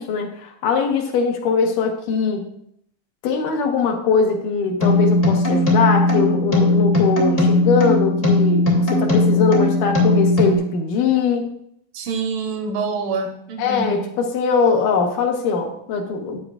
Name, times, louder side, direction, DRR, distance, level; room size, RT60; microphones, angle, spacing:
voice 1, 0.0-2.5 3.2-11.5 13.6-16.4, left 5 dB, 85° left, 2 dB, 2.7 m, -21 dB
sound 1, 4.8-10.5, left 2 dB, 15° left, 1.3 m, -18 dB
voice 2, 11.9-14.1, right 4 dB, 85° right, 3 dB, 2.5 m, -26 dB
11.5 x 8.3 x 2.4 m, 0.72 s
omnidirectional pair, 3.6 m